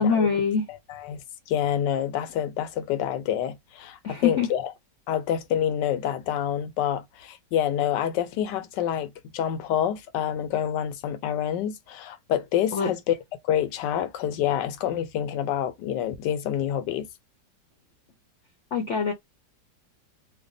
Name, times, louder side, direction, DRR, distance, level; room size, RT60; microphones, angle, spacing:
voice 1, 0.0-0.7 4.0-4.5 12.7-12.9 18.7-19.1, left 6 dB, 60° left, 0.8 m, -23 dB
voice 2, 0.7-4.7 5.1-13.1 13.4-17.1, left 10 dB, 80° left, 1.3 m, -27 dB
3.3 x 2.2 x 3.8 m
omnidirectional pair, 1.9 m